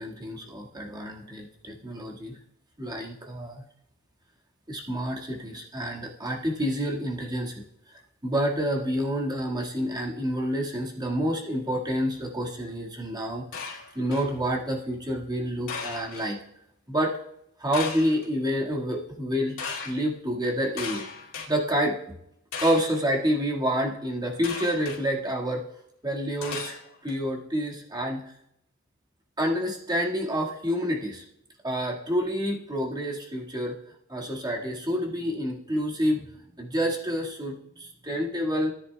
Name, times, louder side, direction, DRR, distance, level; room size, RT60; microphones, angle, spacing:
voice 1, 0.0-2.3 2.8-3.6 4.7-7.5 8.2-13.4 13.7-16.4 16.9-17.2 17.6-19.6 19.8-21.0 21.5-22.0 22.6-25.6 26.0-28.2 29.4-31.2 31.6-33.8 34.1-36.3 36.6-38.7, equal, 20° right, -2 dB, 1.8 m, -28 dB
sound 1, 13.5-14.3 15.7-16.3 17.7-18.3 19.6-19.9 20.8-21.5 22.5-23.0 24.4-25.0 26.4-27.1, left 5 dB, 80° left, 2.4 m, -36 dB
17.5 x 9.9 x 2.3 m, 0.77 s
head